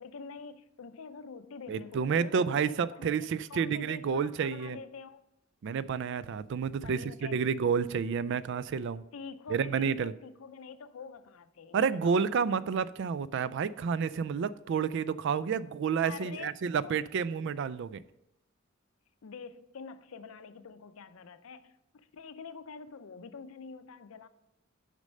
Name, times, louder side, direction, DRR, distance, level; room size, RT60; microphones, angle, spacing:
voice 1, 0.0-3.2 3.5-5.2 6.8-7.4 9.1-12.3 16.0-16.5 16.8-17.0 19.2-24.3, left 5 dB, 90° left, 12 dB, 0.5 m, -46 dB
voice 2, 1.7-4.8 5.6-9.0 9.5-10.1 11.7-18.0, right 6 dB, 60° right, 17 dB, 0.3 m, -30 dB
6.3 x 5.2 x 6.5 m, 0.87 s
head